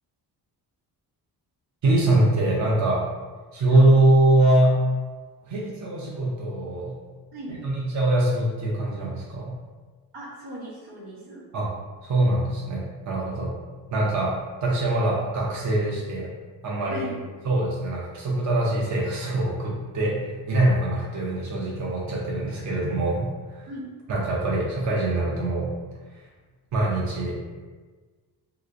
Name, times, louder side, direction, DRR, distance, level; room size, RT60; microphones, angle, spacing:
voice 1, 1.8-3.0 3.5-4.8 5.4-6.9 7.6-9.5 11.5-11.7 12.0-13.5 13.9-14.3 14.6-16.3 16.6-17.1 17.5-23.7 24.1-25.7 26.1-26.2 26.7-27.4, right 2 dB, 50° right, -4 dB, 0.7 m, -23 dB
voice 2, 7.3-7.6 10.1-11.5 16.9-17.1 23.7-23.9, equal, 85° right, -6 dB, 1.0 m, -38 dB
3.0 x 2.9 x 2.5 m, 1.4 s
cardioid pair, 130°, 38 cm